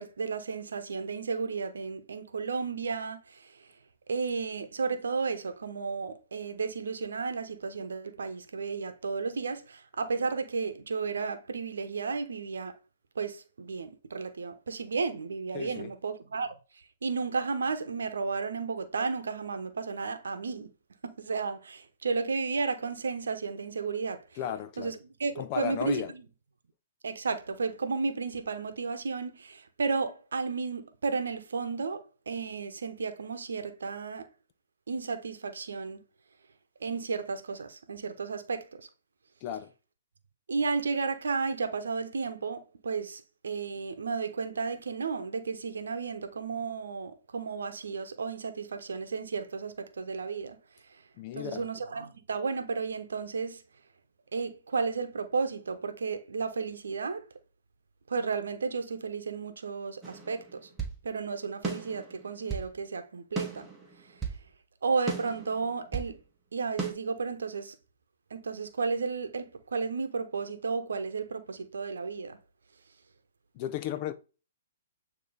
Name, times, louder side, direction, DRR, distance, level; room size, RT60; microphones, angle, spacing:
voice 1, 0.0-3.2 4.1-12.7 13.2-16.5 17.0-20.7 21.0-24.2 24.8-24.9 25.2-26.0 27.0-34.3 34.9-36.0 36.8-38.9 40.5-50.6 51.4-53.6 54.3-57.2 58.1-60.7 61.0-63.7 64.8-66.2 66.5-67.7 68.3-72.4, right 4 dB, 80° right, 0.9 m, -33 dB
voice 2, 15.5-15.9 24.3-25.0 25.4-26.1 39.4-39.7 51.2-51.7 73.5-74.1, left 10 dB, 40° left, 0.7 m, -35 dB
sound 1, 60.0-61.0 61.6-62.7 63.4-64.4 65.1-66.1 66.8-66.9, right 5 dB, 15° right, 1.4 m, -36 dB
8.4 x 3.0 x 3.9 m
hypercardioid pair, 130°, 0 cm